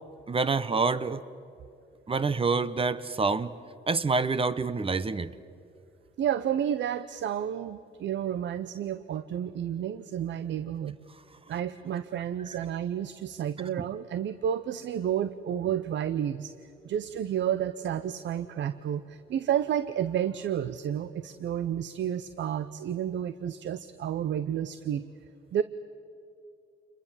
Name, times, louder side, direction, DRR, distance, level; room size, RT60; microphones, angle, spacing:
voice 1, 0.3-1.2 2.1-3.5 3.9-5.3, right 4 dB, 30° right, 15 dB, 0.9 m, -27 dB
voice 2, 6.2-10.9 11.5-16.5 16.8-25.1 25.5-25.6, right 9 dB, 65° right, 13 dB, 0.8 m, -31 dB
28.0 x 22.0 x 7.4 m, 2.6 s
cardioid pair, 90°, 20 cm